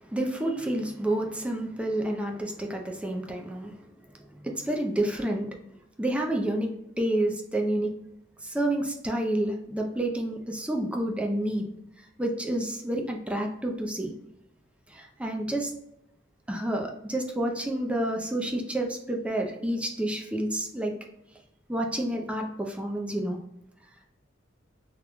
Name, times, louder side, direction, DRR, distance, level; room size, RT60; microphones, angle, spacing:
voice 1, 0.0-3.9 4.4-5.5 6.0-6.7 7.0-7.9 8.4-11.6 12.2-14.1 14.9-15.7 16.5-20.9 21.7-23.4, right 1 dB, 5° right, 1 dB, 0.5 m, -29 dB
3.7 x 3.0 x 2.2 m, 0.82 s
head